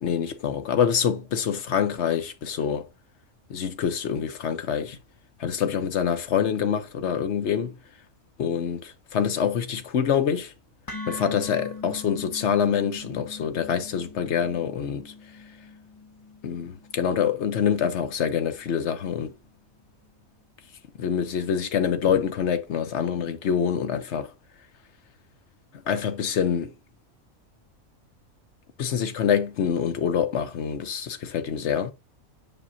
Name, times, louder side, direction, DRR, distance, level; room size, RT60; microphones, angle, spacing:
voice 1, 0.0-2.9 3.5-5.0 5.4-7.8 8.4-10.5 11.1-15.1 16.4-19.3 21.0-24.3 25.7-26.7 28.8-31.9, left 8 dB, 60° left, 1.0 m, -26 dB
sound 1, 10.9-19.0, left 3 dB, 30° left, 0.4 m, -42 dB
7.5 x 5.0 x 2.7 m
omnidirectional pair, 1.5 m